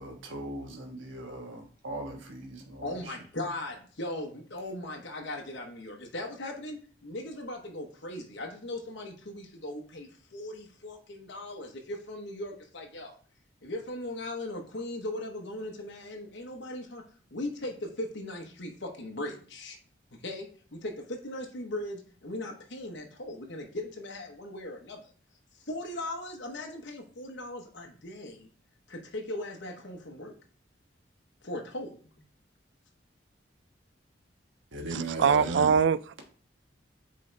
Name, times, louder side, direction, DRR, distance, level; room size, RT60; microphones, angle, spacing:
voice 1, 0.0-2.9 34.7-35.7, right 1 dB, 85° right, 1.4 m, -38 dB
voice 2, 2.8-13.1 13.6-17.1 17.3-19.8 20.2-25.1 25.6-28.5 28.9-30.3 31.4-32.2, left 1 dB, 65° left, 1.1 m, -38 dB
voice 3, 34.9-36.3, right 6 dB, 70° right, 0.3 m, -24 dB
8.4 x 3.8 x 3.3 m
head